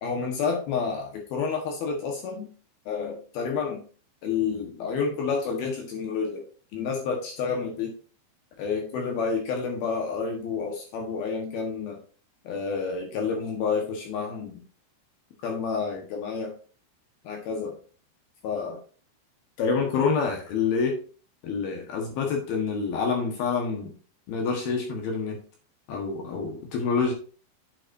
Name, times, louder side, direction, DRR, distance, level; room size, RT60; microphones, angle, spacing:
voice 1, 0.0-2.5 2.9-3.8 4.2-6.4 6.7-7.9 8.6-12.0 12.4-14.6 15.4-16.5 17.2-17.8 18.4-18.8 19.6-21.0 21.4-23.9 24.3-25.4 25.9-27.1, left 5 dB, 65° left, 1 dB, 2.8 m, -28 dB
8.4 x 7.8 x 2.7 m, 0.40 s
omnidirectional pair, 5.4 m